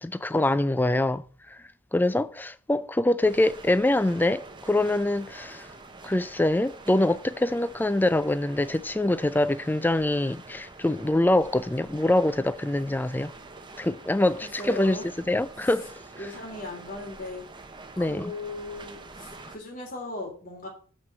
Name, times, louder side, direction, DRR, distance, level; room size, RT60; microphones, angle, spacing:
voice 1, 0.0-1.6 1.9-5.7 6.0-13.3 13.8-15.9 18.0-18.3, left 1 dB, 10° left, 0.4 m, -24 dB
sound 1, 3.2-19.6, right 3 dB, 20° right, 0.9 m, -46 dB
voice 2, 14.6-15.1 16.2-17.4 17.9-20.7, left 2 dB, 40° left, 3.2 m, -37 dB
6.4 x 6.1 x 7.5 m
head